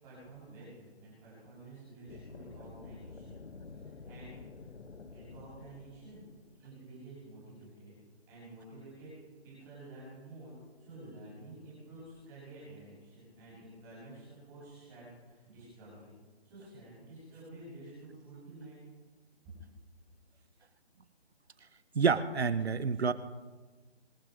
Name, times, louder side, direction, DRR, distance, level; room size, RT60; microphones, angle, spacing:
voice 1, 0.0-3.4 3.7-4.7 5.1-6.2 6.6-8.0 8.3-9.1 9.4-16.1 16.4-18.8, right 2 dB, 10° right, -8 dB, 6.9 m, -51 dB
sound 1, 2.1-6.8, left 4 dB, 70° left, 1.6 m, -50 dB
voice 2, 21.9-23.1, right 5 dB, 70° right, 14 dB, 1.3 m, -28 dB
25.5 x 11.0 x 5.2 m, 1.3 s
hypercardioid pair, 180°, 33 cm